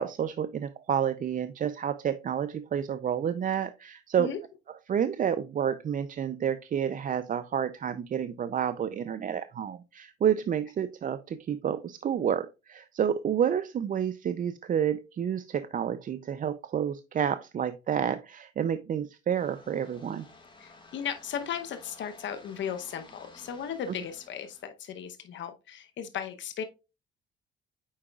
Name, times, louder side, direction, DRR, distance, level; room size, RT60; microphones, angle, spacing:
voice 1, 0.0-4.3 4.9-20.3, right 8 dB, 45° right, 0.4 m, -29 dB
sound 1, 19.4-24.7, left 3 dB, 25° left, 2.3 m, -54 dB
voice 2, 20.6-26.6, left 8 dB, 70° left, 0.8 m, -36 dB
8.6 x 4.9 x 2.3 m
cardioid pair, 90°, 20 cm